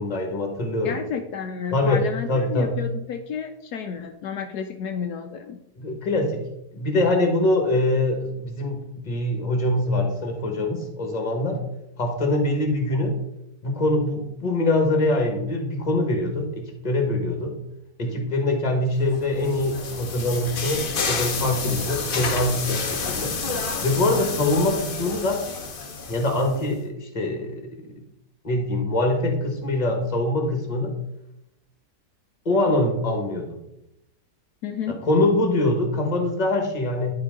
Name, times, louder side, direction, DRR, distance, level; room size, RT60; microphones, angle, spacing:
voice 1, 0.0-1.0 1.7-2.0 2.3-2.7 5.8-6.4 6.7-11.6 12.0-13.1 13.6-17.5 18.0-23.3 23.8-25.4 26.1-27.7 28.4-30.9 32.4-33.6 34.9-37.1, left 2 dB, 25° left, 3 dB, 1.4 m, -23 dB
voice 2, 0.8-5.6 34.6-35.0, left 7 dB, 75° left, 5 dB, 1.1 m, -31 dB
sound 1, 19.1-26.6, left 4 dB, 45° left, 0.8 m, -30 dB
10.5 x 4.6 x 3.7 m, 0.84 s
omnidirectional pair, 1.8 m